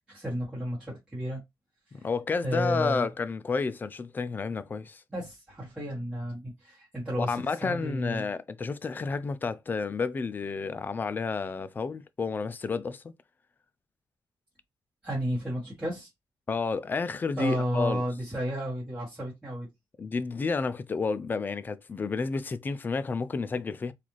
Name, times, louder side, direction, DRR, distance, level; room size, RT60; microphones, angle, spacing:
voice 1, 0.1-1.4 2.0-2.1 2.4-3.1 5.1-8.2 15.0-16.1 17.4-19.7, equal, 10° right, 1.3 m, -32 dB
voice 2, 1.9-5.0 7.2-13.0 16.5-18.0 20.0-23.9, left 4 dB, 25° left, 0.3 m, -30 dB
4.0 x 2.4 x 3.0 m
wide cardioid pair, 165°, 8 cm